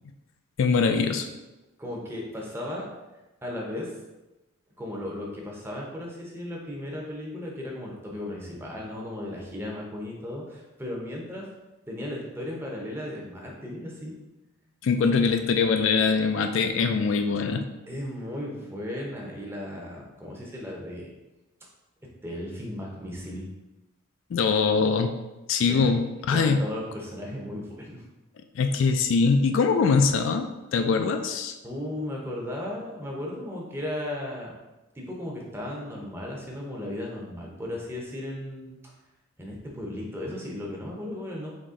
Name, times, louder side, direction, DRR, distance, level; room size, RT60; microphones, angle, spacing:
voice 1, 0.6-1.3 14.8-17.6 24.3-25.1 25.5-26.0 26.3-26.6 28.6-31.5, left 5 dB, 65° left, 6 dB, 0.3 m, -22 dB
voice 2, 1.8-2.9 3.4-3.9 4.8-11.5 11.9-14.1 17.9-21.1 22.2-23.5 25.7-25.9 26.3-28.0 31.6-34.5 35.0-38.8 39.4-41.5, left 1 dB, 10° right, -2 dB, 0.7 m, -35 dB
4.1 x 2.9 x 3.7 m, 1.1 s
head